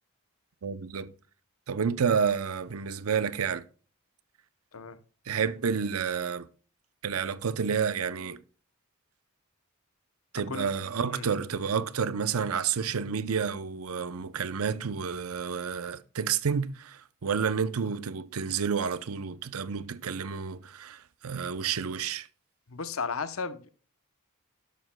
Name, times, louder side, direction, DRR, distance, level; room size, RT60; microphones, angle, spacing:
voice 1, 0.6-1.1 1.7-3.6 5.3-6.5 7.0-8.4 10.3-22.3, right 6 dB, 80° right, 0.6 m, -30 dB
voice 2, 22.7-23.7, left 5 dB, 70° left, 0.8 m, -35 dB
12.0 x 11.5 x 2.2 m
head